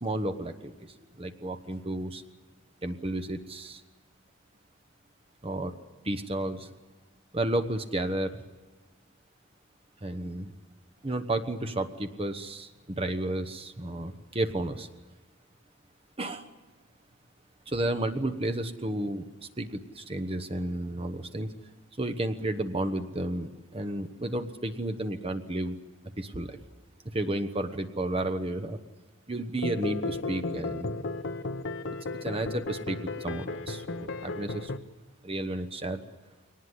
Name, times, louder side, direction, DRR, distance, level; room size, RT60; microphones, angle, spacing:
voice 1, 0.0-0.7 1.2-2.2 2.8-3.8 5.4-5.7 6.0-6.7 7.3-8.4 10.0-10.5 11.0-14.9 16.2-16.5 17.7-21.5 22.0-25.8 26.2-26.6 27.0-28.8 29.3-31.0 32.2-34.7 35.2-36.0, right 1 dB, 25° right, 7 dB, 1.1 m, -32 dB
sound 1, 29.6-34.8, left 3 dB, 55° left, 1.1 m, -34 dB
23.0 x 19.0 x 9.9 m, 1.3 s
head